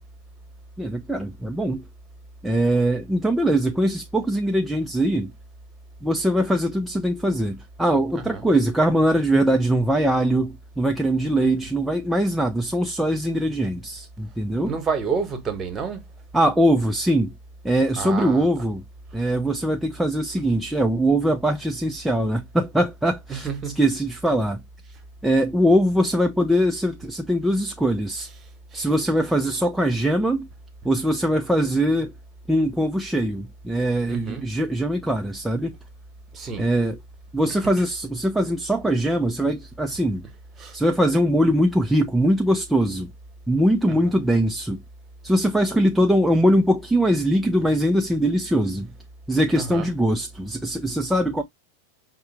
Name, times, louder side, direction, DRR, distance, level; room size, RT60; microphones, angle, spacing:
voice 1, 0.8-1.8 2.4-5.3 6.0-14.7 16.3-17.3 17.6-18.8 19.1-23.5 23.8-24.6 25.2-28.3 28.7-30.5 30.8-32.1 32.5-35.7 36.6-37.0 37.3-40.2 40.7-43.1 43.5-44.8 45.2-48.9 49.3-51.4, right 1 dB, 5° right, 0.4 m, -22 dB
voice 2, 14.5-16.0 18.0-18.5 23.3-23.8 28.7-28.9 34.1-34.5 36.3-36.7 40.6-40.8 44.0-44.2 49.6-49.9, right 5 dB, 20° right, 1.1 m, -29 dB
5.4 x 2.1 x 3.2 m
figure-of-eight pair, 90°, 0 cm